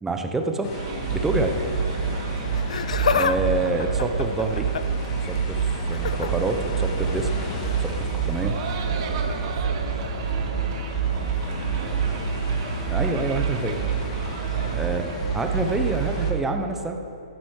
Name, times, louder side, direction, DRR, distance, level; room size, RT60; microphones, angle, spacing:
voice 1, 0.0-0.7 1.1-1.6 3.1-4.7 5.2-7.3 7.8-8.6 12.9-14.2 14.7-17.0, right 2 dB, 10° right, 4 dB, 0.7 m, -27 dB
sound 1, 0.6-16.3, left 3 dB, 40° left, 1.6 m, -36 dB
sound 2, 0.7-16.4, right 7 dB, 45° right, 1.0 m, -27 dB
Laughter, 2.5-3.4 3.7-5.0 5.9-6.3 7.6-7.8 8.7-8.8, left 6 dB, 65° left, 0.4 m, -26 dB
voice 2, 8.8-12.3 14.1-14.9, right 2 dB, 65° right, -4 dB, 1.5 m, -40 dB
15.0 x 9.4 x 3.2 m, 2.9 s
figure-of-eight pair, 125°, 4 cm